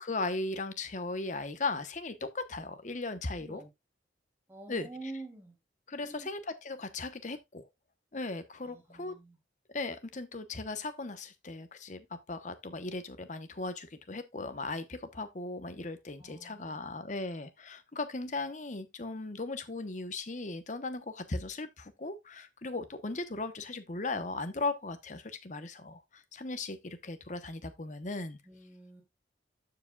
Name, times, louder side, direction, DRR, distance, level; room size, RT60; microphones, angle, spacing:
voice 1, 0.0-3.6 4.7-4.9 5.9-7.7 8.1-9.2 9.7-28.4, left 3 dB, 40° left, 0.9 m, -37 dB
voice 2, 4.5-5.6 6.0-6.3 8.6-9.4 16.2-17.1 28.4-29.0, right 2 dB, 10° right, 2.7 m, -47 dB
14.0 x 4.8 x 2.3 m
head